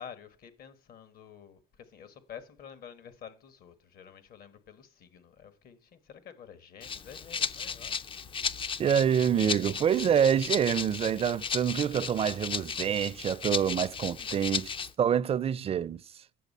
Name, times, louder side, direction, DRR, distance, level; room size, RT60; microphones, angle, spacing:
voice 1, 0.0-8.1 14.2-14.6, left 8 dB, 60° left, 1.5 m, -49 dB
Rattle (instrument), 6.8-14.9, left 6 dB, 30° left, 0.4 m, -35 dB
voice 2, 8.8-14.7 15.0-16.2, right 8 dB, 35° right, 0.4 m, -26 dB
9.2 x 7.2 x 5.4 m
cardioid pair, 110°, 17 cm